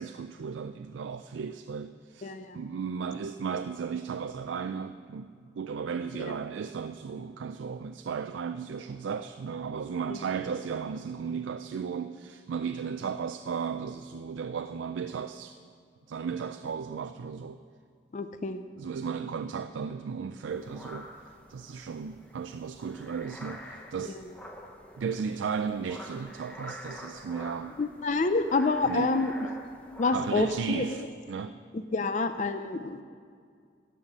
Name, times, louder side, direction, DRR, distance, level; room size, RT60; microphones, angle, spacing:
voice 1, 0.0-15.6 16.1-17.6 18.8-21.1 21.5-24.2 25.0-27.8 28.8-29.1 30.1-31.5, right 6 dB, 90° right, 9 dB, 0.4 m, -35 dB
voice 2, 2.2-2.6 6.2-6.4 10.1-10.2 18.1-18.6 24.1-24.2 27.8-29.3 30.0-30.9 31.7-33.0, left 3 dB, 40° left, 10 dB, 0.4 m, -28 dB
sound 1, 20.5-30.9, equal, 5° left, 0.8 m, -47 dB
16.5 x 5.7 x 7.2 m, 2.2 s
head